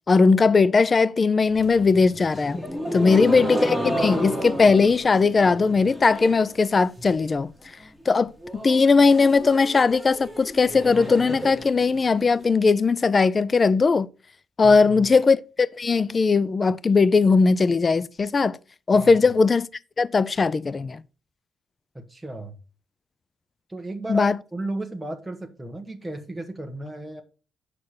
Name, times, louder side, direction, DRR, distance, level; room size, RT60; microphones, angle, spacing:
voice 1, 0.1-2.6 2.9-7.5 8.1-8.3 8.6-14.1 14.6-18.6 18.9-19.7 20.0-21.0 24.1-24.4, left 4 dB, 35° left, 0.4 m, -19 dB
sound 1, 1.5-6.5 6.8-7.3 7.7-7.8 8.0-8.1 8.4-12.4, right 1 dB, 10° left, 2.1 m, -32 dB
voice 2, 2.9-3.4 14.6-15.1 18.9-19.1 21.9-22.5 23.7-27.2, right 2 dB, 10° right, 1.2 m, -34 dB
6.5 x 5.7 x 6.4 m
cardioid pair, 90°, 0 cm